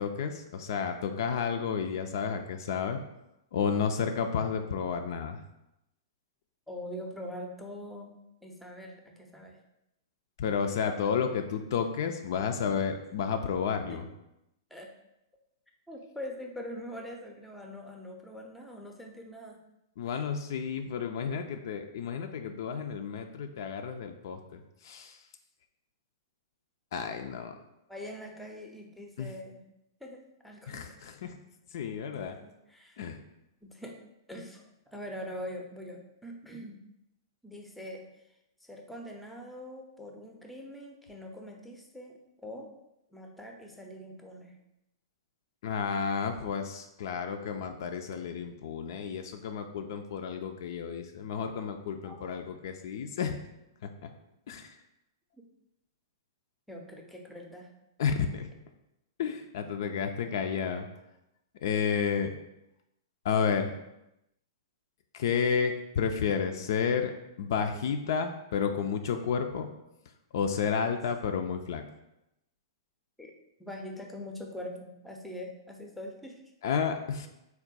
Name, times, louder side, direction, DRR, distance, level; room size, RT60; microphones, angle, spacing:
voice 1, 0.0-3.0 3.5-5.4 10.4-14.0 20.0-25.2 26.9-27.5 29.2-29.3 30.7-31.4 31.7-32.4 33.0-33.2 45.6-53.4 53.8-54.1 54.5-54.8 58.0-58.5 59.2-60.9 61.6-62.3 63.2-63.7 65.1-67.1 67.4-69.7 70.3-71.8 76.6-77.3, left 6 dB, 55° left, 6 dB, 0.3 m, -31 dB
voice 2, 6.7-8.1 8.4-9.6 13.9-14.0 14.7-14.9 15.9-19.6 27.9-29.6 30.0-30.8 32.2-33.0 33.6-34.0 34.3-36.8 37.4-38.0 38.6-42.7 43.1-44.6 52.0-52.4 55.4-55.5 56.7-57.7 73.2-73.3 73.6-76.4, left 1 dB, ahead, 1 dB, 0.5 m, -43 dB
3.5 x 2.2 x 4.0 m, 0.88 s
figure-of-eight pair, 110°, 2 cm